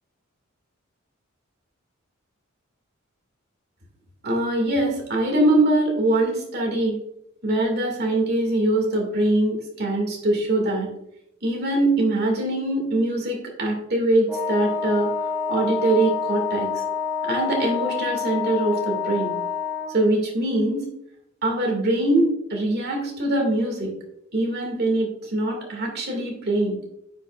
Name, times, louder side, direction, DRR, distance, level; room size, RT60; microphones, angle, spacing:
voice 1, 4.2-6.9 7.4-10.9 11.4-15.1 15.5-16.7 17.3-19.3 19.9-20.8 21.4-23.9 24.3-26.8, right 1 dB, 50° right, 1 dB, 2.1 m, -22 dB
Wind instrument woodwind instrument, 14.3-20.0, left 7 dB, 15° right, 1.4 m, -27 dB
9.5 x 5.6 x 2.4 m, 0.81 s
head